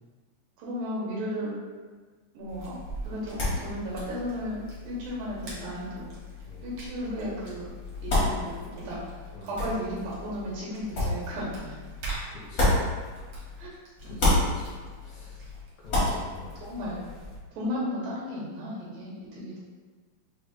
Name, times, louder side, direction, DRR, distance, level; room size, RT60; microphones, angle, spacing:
voice 1, 0.6-1.6 2.3-6.1 6.6-7.7 8.0-9.0 9.4-11.8 13.6-13.7 14.0-14.3 16.6-17.0 17.5-19.6, equal, 85° right, -6 dB, 2.7 m, -34 dB
sound 1, 2.4-16.5, right 4 dB, 70° right, 1.2 m, -45 dB
sound 2, 2.5-13.7 13.9-17.4, left 2 dB, 60° left, 0.8 m, -32 dB
voice 2, 12.3-12.8 13.4-13.7 14.1-15.4 15.8-16.5, left 2 dB, 80° left, -7 dB, 2.9 m, -46 dB
6.4 x 2.1 x 2.9 m, 1.4 s
omnidirectional pair, 3.9 m